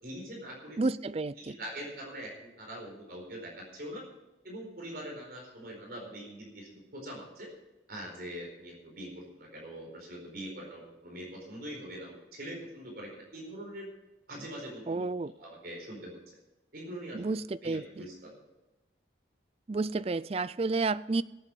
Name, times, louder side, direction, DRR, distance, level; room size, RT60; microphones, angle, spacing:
voice 1, 0.0-0.8 1.4-4.0 4.4-7.5 7.9-13.9 14.3-15.0 15.4-16.2 16.7-17.2 17.6-18.4, equal, 55° right, -1 dB, 4.5 m, -43 dB
voice 2, 0.8-1.6 14.9-15.3 17.1-18.1 19.7-21.2, right 3 dB, 35° right, 17 dB, 0.4 m, -31 dB
17.0 x 8.3 x 5.4 m, 1.0 s
head